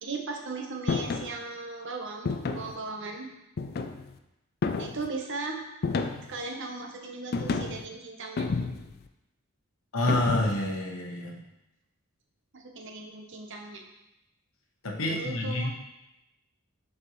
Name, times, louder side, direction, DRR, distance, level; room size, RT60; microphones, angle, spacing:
voice 1, 0.0-3.3 4.8-5.6 6.3-8.5 12.5-13.8 15.1-15.7, right 3 dB, 55° right, 2 dB, 0.9 m, -37 dB
sound 1, 0.9-1.3 2.2-2.8 3.6-4.1 4.6-5.1 5.8-6.4 7.3-7.8 8.4-9.0 10.1-10.7, left 4 dB, 45° left, 0.4 m, -30 dB
voice 2, 9.9-11.4 14.8-15.7, left 1 dB, 65° left, 0 dB, 1.1 m, -28 dB
6.5 x 5.5 x 3.1 m, 0.92 s
head